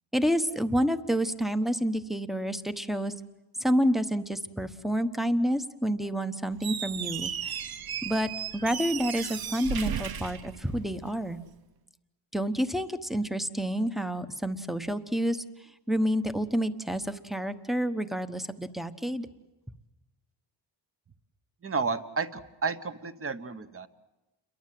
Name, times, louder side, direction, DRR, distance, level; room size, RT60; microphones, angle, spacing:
voice 1, 0.1-3.1 3.6-7.6 8.0-11.4 12.3-15.4 15.9-19.3, equal, ahead, 10 dB, 1.1 m, -29 dB
Squeak, 6.5-11.2, right 8 dB, 50° right, 0.9 m, -35 dB
voice 2, 21.6-23.9, right 4 dB, 30° right, 11 dB, 1.2 m, -32 dB
29.0 x 22.5 x 7.7 m, 1.1 s
wide cardioid pair, 135°, 47 cm